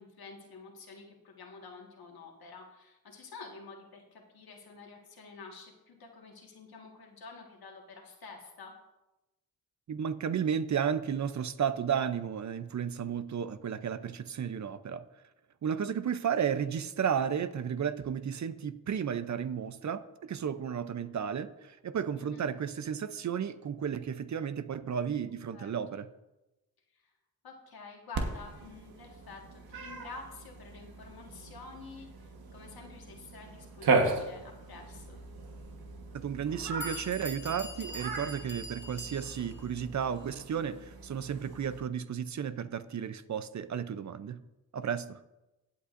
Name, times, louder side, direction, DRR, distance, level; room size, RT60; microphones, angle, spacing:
voice 1, 0.0-8.7 22.2-22.5 25.5-25.7 27.4-35.2, left 4 dB, 80° left, 1 dB, 1.7 m, -49 dB
voice 2, 9.9-15.0 15.6-26.1 36.1-44.4 44.7-45.2, right 8 dB, 50° right, 13 dB, 0.6 m, -33 dB
Cat, 28.1-41.8, right 3 dB, 80° right, 1.3 m, -37 dB
Bell, 36.4-36.5 36.8-39.6, equal, 30° left, 1.5 m, -44 dB
16.0 x 8.4 x 2.6 m, 1.0 s
wide cardioid pair, 100°, 36 cm